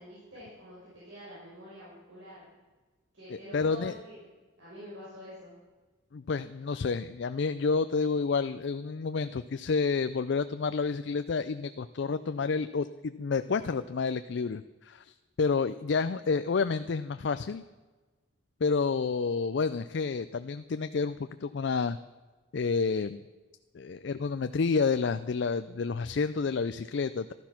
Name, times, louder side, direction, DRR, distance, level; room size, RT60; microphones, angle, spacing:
voice 1, 0.0-2.5 3.1-4.3 4.6-5.5, equal, 65° right, -8 dB, 5.8 m, -47 dB
voice 2, 3.3-3.9 6.1-17.6 18.6-22.0 22.5-23.2 23.7-27.3, left 4 dB, 60° left, 11 dB, 0.4 m, -29 dB
15.0 x 12.5 x 5.9 m, 1.3 s
head